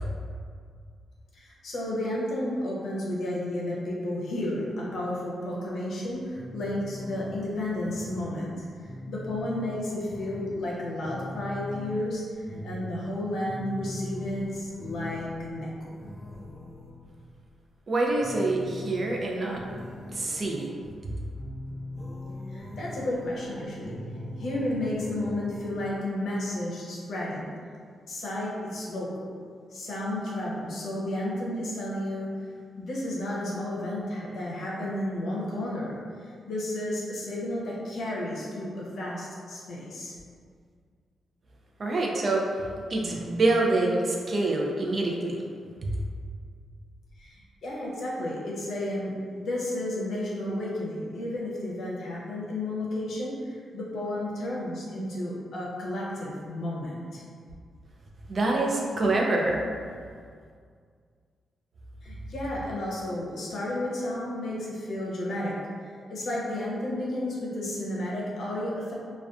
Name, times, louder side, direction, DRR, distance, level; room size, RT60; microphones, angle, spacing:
voice 1, 1.3-8.5 8.8-16.0 22.5-24.0 24.4-27.5 28.1-29.3 29.7-32.3 32.8-40.2 47.2-57.2 62.0-65.6 66.1-68.9, left 1 dB, 75° left, -5 dB, 0.6 m, -32 dB
sound 1, 6.2-17.5 18.1-21.1 21.4-26.0, left 1 dB, ahead, 0.6 m, -41 dB
voice 2, 17.9-19.6 20.1-20.7 41.8-42.5 42.9-45.4 45.8-45.9 58.3-59.6, right 2 dB, 50° right, -1 dB, 0.4 m, -26 dB
2.4 x 2.2 x 2.3 m, 2.1 s
cardioid pair, 65°, 0 cm